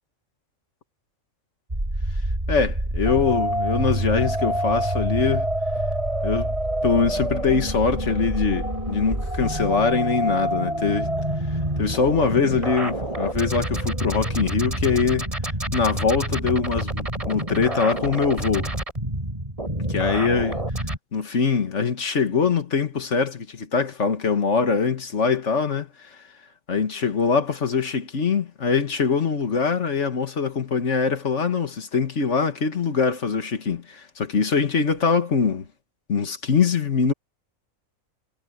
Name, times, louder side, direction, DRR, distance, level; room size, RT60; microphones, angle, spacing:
sound 1, 1.7-21.0, right 1 dB, 25° right, 4.0 m, -27 dB
voice 1, 2.5-5.5 6.2-6.5 6.8-11.1 11.8-15.3 15.7-18.7 19.9-20.6 21.1-26.1 26.7-35.7 36.1-37.1, left 5 dB, 60° left, 1.9 m, -23 dB
omnidirectional pair, 1.4 m